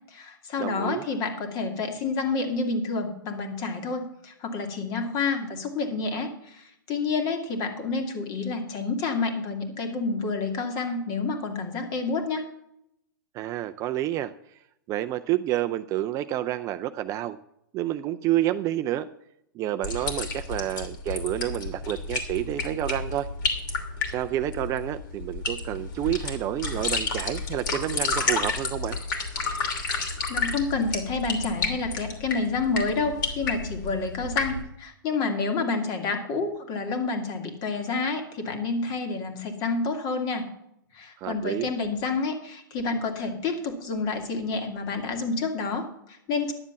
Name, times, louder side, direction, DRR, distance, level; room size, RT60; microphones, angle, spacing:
voice 1, 0.1-12.5 30.3-40.5 40.9-46.5, left 4 dB, 35° left, 6 dB, 2.2 m, -29 dB
voice 2, 0.6-1.0 13.3-14.3 14.9-17.4 17.7-19.1 19.5-23.3 24.1-29.0 41.2-41.7, right 13 dB, 30° right, 10 dB, 0.4 m, -29 dB
sound 1, 19.8-34.6, left 4 dB, 60° left, 2.8 m, -31 dB
11.0 x 7.3 x 7.0 m, 0.78 s
hypercardioid pair, 120°, 12 cm